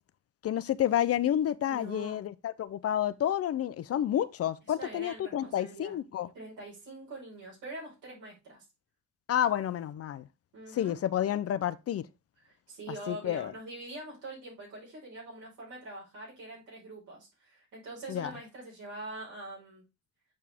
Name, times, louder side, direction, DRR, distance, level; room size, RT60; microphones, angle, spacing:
voice 1, 0.4-6.3 9.3-10.3 10.7-12.1 13.1-13.5 18.1-18.3, left 11 dB, 55° left, 0.5 m, -30 dB
voice 2, 1.7-2.2 4.7-6.0 6.3-8.6 10.5-11.0 12.4-19.8, right 2 dB, 80° right, 4.6 m, -44 dB
7.4 x 4.8 x 3.5 m
cardioid pair, 90°, 30 cm